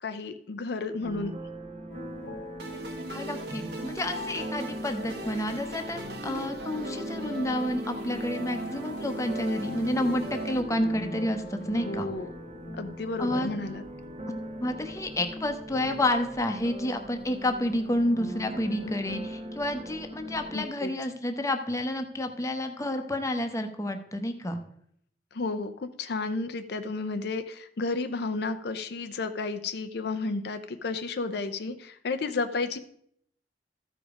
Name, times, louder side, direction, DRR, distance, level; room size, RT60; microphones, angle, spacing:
voice 1, 0.0-1.3 11.8-12.3 12.7-13.8 20.5-20.9 25.3-32.8, left 3 dB, 65° left, 9 dB, 0.6 m, -32 dB
sound 1, 1.0-20.6, right 1 dB, 35° right, 1.1 m, -41 dB
sound 2, 1.9-16.5 17.8-19.0, left 1 dB, 85° left, 1.4 m, -44 dB
sound 3, 2.6-10.6, right 1 dB, 65° right, 1.5 m, -38 dB
voice 2, 3.1-12.1 13.2-13.5 14.6-24.6, left 1 dB, 20° left, 6 dB, 0.9 m, -30 dB
13.5 x 5.1 x 5.0 m, 0.69 s
head